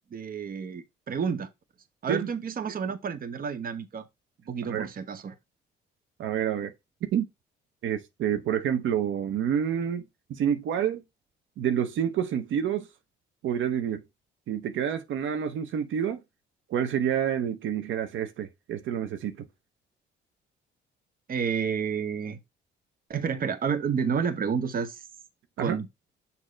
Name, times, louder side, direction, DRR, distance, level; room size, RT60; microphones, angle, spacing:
voice 1, 0.1-1.5 2.0-4.1 4.5-5.3 21.3-22.4 23.1-25.1 25.6-25.9, right 6 dB, 45° right, 1.0 m, -30 dB
voice 2, 6.2-6.7 7.1-7.3 7.8-10.0 10.3-11.0 11.6-12.9 13.4-14.0 14.5-16.2 16.7-19.4 25.6-25.8, right 9 dB, 75° right, 0.9 m, -28 dB
6.6 x 2.8 x 5.0 m
cardioid pair, 90°, 20 cm